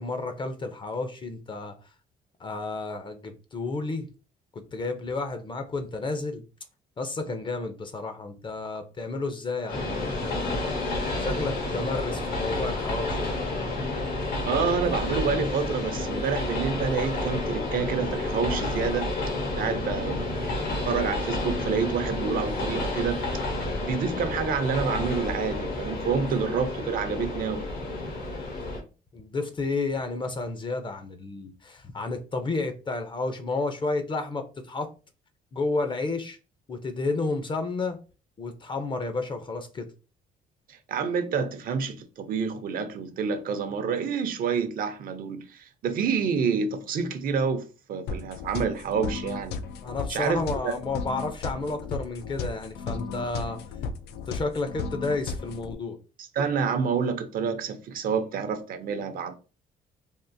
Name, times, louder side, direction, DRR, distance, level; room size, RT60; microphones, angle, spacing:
voice 1, 0.0-1.8 2.4-4.1 4.7-6.4 7.0-10.6 11.2-13.4 29.1-34.9 35.5-36.4 36.7-38.0 38.4-39.9 49.8-53.6 54.1-56.0, left 3 dB, 30° left, 0.5 m, -31 dB
Train, 9.7-28.8, left 2 dB, 70° left, 1.2 m, -30 dB
voice 2, 14.5-19.1 19.6-20.5 20.9-23.3 23.8-27.7 40.7-49.6 50.1-50.7 56.3-59.4, right 6 dB, 60° right, 0.6 m, -28 dB
sound 1, 48.1-55.8, left 5 dB, 90° left, 0.4 m, -35 dB
3.6 x 2.4 x 2.6 m
cardioid pair, 125°, 17 cm